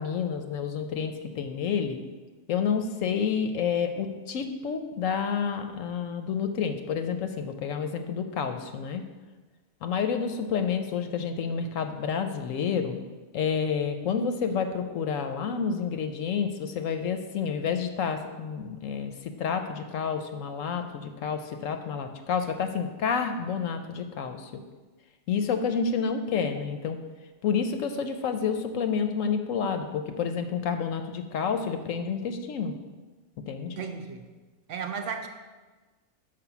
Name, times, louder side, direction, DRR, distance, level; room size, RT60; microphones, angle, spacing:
voice 1, 0.0-2.0 2.5-9.0 9.8-13.0 13.3-24.5 25.3-27.0 27.4-32.7 33.5-33.8, left 6 dB, 70° left, 7 dB, 0.9 m, -29 dB
voice 2, 33.8-34.2 34.7-35.3, right 6 dB, 65° right, 5 dB, 0.8 m, -34 dB
6.7 x 5.0 x 5.8 m, 1.3 s
omnidirectional pair, 1.6 m